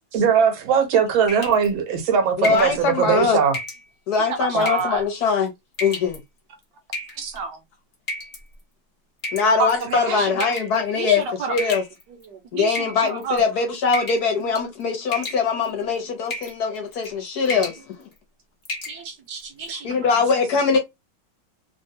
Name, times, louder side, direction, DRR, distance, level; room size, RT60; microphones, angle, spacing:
voice 1, 0.1-3.6 4.5-4.8 7.2-7.6 9.6-10.2, right 7 dB, 85° right, 1.6 m, -21 dB
sound 1, 1.3-1.7 2.4-2.7 3.5-3.8 4.6-5.0 5.7-6.2 6.9-7.4 8.1-8.4 9.2-9.8 10.4-10.8 11.6-12.2 12.7-13.4 13.9-14.3 14.5-14.8 15.1-15.7 16.3-16.6 16.9-17.1 17.4-17.8 18.2-18.3 18.6-19.0, left 2 dB, 45° left, 1.2 m, -31 dB
voice 2, 2.4-3.4 4.1-5.5 5.8-6.2 9.3-11.2 11.5-11.8 12.5-18.1 19.8-20.8, left 5 dB, 60° left, 1.2 m, -22 dB
voice 3, 4.4-5.0 10.1-11.7 12.1-13.4 14.4-14.6 15.1-15.2 18.9-20.0, right 4 dB, 70° right, 1.3 m, -31 dB
3.4 x 2.2 x 2.7 m
omnidirectional pair, 2.1 m